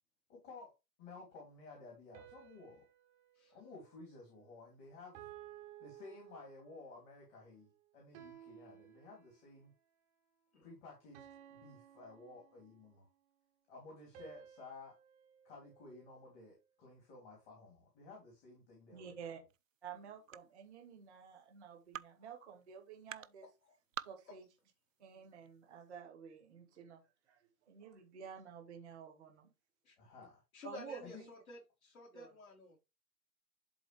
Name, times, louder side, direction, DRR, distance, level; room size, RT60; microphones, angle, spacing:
voice 1, 0.3-0.7 1.0-2.9 3.5-5.2 5.8-9.7 10.6-11.2 11.5-13.1 13.7-14.9 15.4-19.4 30.0-30.4 31.0-31.2, left 3 dB, 30° left, 3.2 m, -54 dB
sound 1, 2.1-4.6 5.1-6.9 8.1-9.7 11.1-13.0 14.1-16.5, right 11 dB, 15° right, 0.8 m, -57 dB
voice 2, 18.9-19.4 19.8-23.5 24.0-24.4 25.0-27.0 27.3-27.4 27.7-29.5 30.6-31.3 32.1-32.3, right 7 dB, ahead, 0.4 m, -51 dB
sound 2, 19.5-26.0, right 10 dB, 55° right, 0.5 m, -53 dB
voice 3, 23.4-23.7 24.3-24.4 29.8-30.0 30.5-32.8, left 3 dB, 55° left, 4.1 m, -53 dB
11.0 x 3.9 x 3.2 m
figure-of-eight pair, 120°, 50 cm